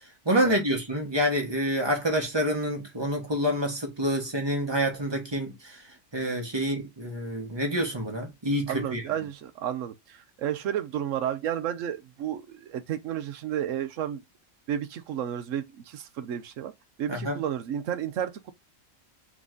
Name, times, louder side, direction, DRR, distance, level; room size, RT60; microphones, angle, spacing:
voice 1, 0.2-5.8 6.1-9.0 17.1-17.4, equal, 20° right, 1.2 m, -27 dB
voice 2, 8.7-14.2 14.7-16.7 17.0-18.5, right 10 dB, 70° right, 1.0 m, -32 dB
3.8 x 3.1 x 3.7 m
omnidirectional pair, 1.4 m